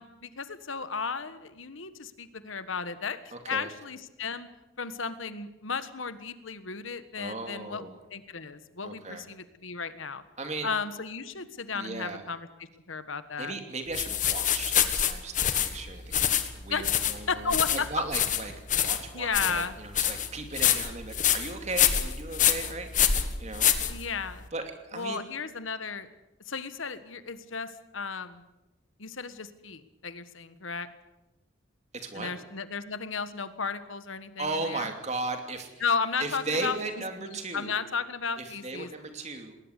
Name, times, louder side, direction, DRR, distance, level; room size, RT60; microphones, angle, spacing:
voice 1, 0.0-3.2 3.5-4.5 4.8-10.2 10.6-13.5 16.7-16.8 17.3-17.9 19.1-19.8 23.9-24.5 24.9-26.1 26.5-28.4 29.0-30.9 32.1-34.9 35.8-36.8 37.2-38.9, left 5 dB, 80° left, 12 dB, 1.4 m, -34 dB
voice 2, 3.3-3.7 7.1-8.0 8.8-9.2 10.4-10.7 11.7-12.2 13.4-16.2 16.5-24.0 24.5-25.2 31.9-32.3 34.4-35.8 36.2-37.8 38.4-39.6, right 3 dB, 35° right, 5 dB, 2.8 m, -36 dB
sound 1, 13.9-24.4, left 9 dB, 40° left, 1.5 m, -26 dB
20.0 x 19.0 x 8.3 m, 1.0 s
head